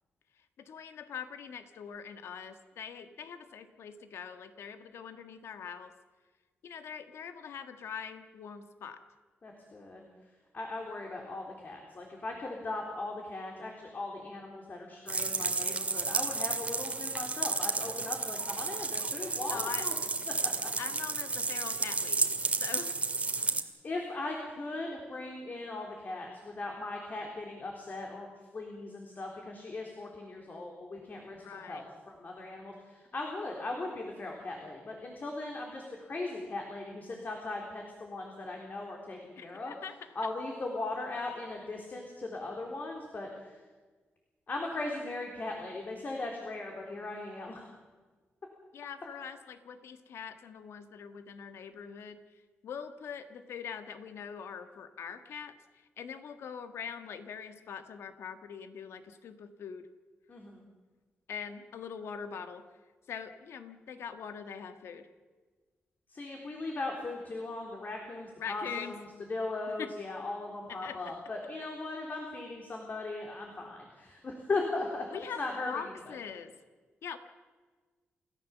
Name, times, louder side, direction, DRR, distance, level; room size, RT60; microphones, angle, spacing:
voice 1, 0.6-5.9 6.6-9.0 19.5-19.9 20.8-22.3 22.6-22.9 31.4-31.8 39.4-39.9 48.7-52.2 52.6-55.5 56.0-59.9 61.3-62.6 63.1-65.1 68.4-68.9 69.8-69.9 70.7-71.1 75.1-76.5 77.0-77.2, left 7 dB, 85° left, 8 dB, 1.5 m, -43 dB
voice 2, 9.4-10.1 10.5-19.9 20.4-20.5 23.8-39.7 40.2-43.6 44.5-47.6 60.3-60.6 66.1-75.1 75.4-76.1, left 2 dB, 45° left, 1 dB, 3.6 m, -38 dB
sound 1, 15.1-23.6, right 3 dB, 30° right, 2.0 m, -32 dB
28.5 x 14.5 x 7.1 m, 1.4 s
cardioid pair, 90°, 4 cm